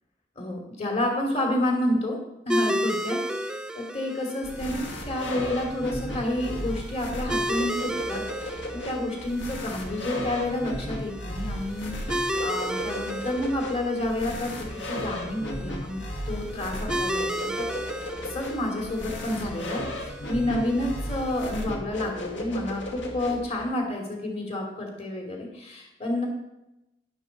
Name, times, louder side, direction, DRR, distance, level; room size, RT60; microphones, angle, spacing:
voice 1, 0.4-2.2 2.5-3.2 3.7-17.9 18.2-26.3, left 1 dB, 35° left, 1 dB, 2.9 m, -30 dB
sound 1, 2.5-21.6, equal, 5° right, 0.5 m, -34 dB
sound 2, 4.4-23.6, equal, 85° left, 2.3 m, -35 dB
11.5 x 11.5 x 4.2 m, 0.90 s
head